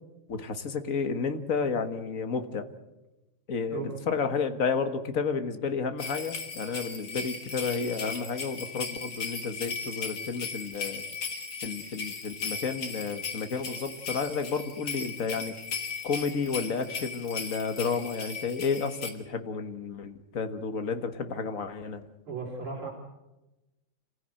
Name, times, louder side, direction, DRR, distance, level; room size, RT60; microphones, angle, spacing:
voice 1, 0.3-2.7 3.5-11.0 11.6-15.6 16.0-22.1, left 5 dB, 40° left, 8 dB, 1.8 m, -31 dB
sound 1, 6.0-19.1, left 5 dB, 75° left, 3.2 m, -37 dB
voice 2, 22.3-22.9, right 4 dB, 85° right, -1 dB, 4.6 m, -35 dB
27.5 x 15.5 x 7.8 m, 1.0 s
omnidirectional pair, 2.3 m